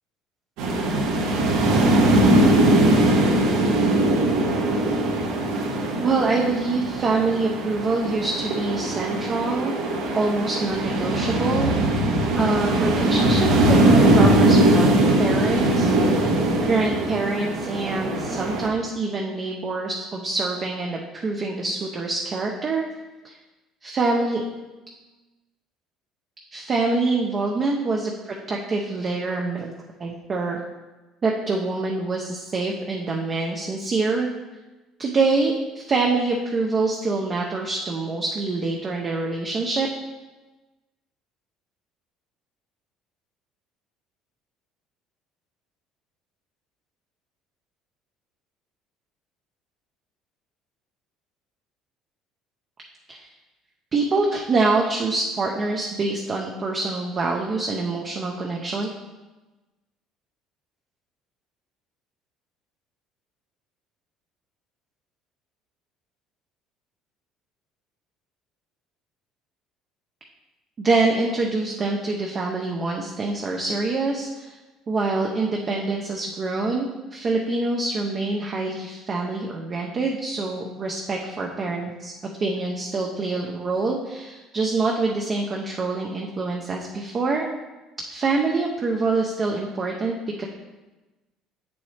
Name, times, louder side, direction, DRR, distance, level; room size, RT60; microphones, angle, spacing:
sound 1, 0.6-18.7, right 1 dB, 75° right, 1.3 m, -20 dB
voice 1, 6.0-9.7 10.1-11.7 12.3-14.9 15.2-16.1 16.6-22.8 23.2-23.4 23.8-24.5 26.5-29.7 30.0-30.6 31.2-34.3 35.0-39.9 53.1-53.3 53.9-58.9 70.8-74.6 74.9-82.1 82.4-87.5 88.1-90.5, right 3 dB, 25° right, 0 dB, 0.6 m, -25 dB
8.5 x 6.9 x 3.3 m, 1.2 s
cardioid pair, 175°, 0 cm